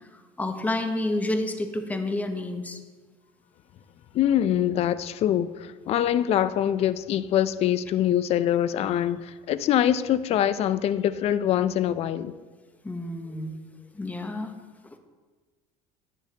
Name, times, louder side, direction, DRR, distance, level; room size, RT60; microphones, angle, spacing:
voice 1, 0.1-2.8 12.8-13.6 13.9-14.5, left 1 dB, 10° left, 0.8 m, -29 dB
voice 2, 4.1-12.3, left 11 dB, 40° left, 0.4 m, -24 dB
9.8 x 9.0 x 2.8 m
supercardioid pair, 110°, 16 cm